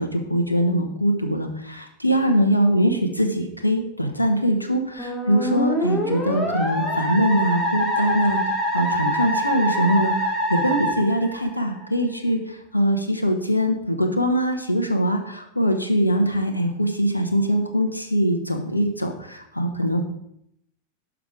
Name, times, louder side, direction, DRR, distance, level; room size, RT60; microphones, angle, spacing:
voice 1, 0.0-20.0, equal, 85° left, 5 dB, 0.9 m, -22 dB
Musical instrument, 5.0-11.9, equal, 10° left, 1.8 m, -25 dB
6.1 x 6.0 x 4.8 m, 0.74 s
figure-of-eight pair, 90°, 0 cm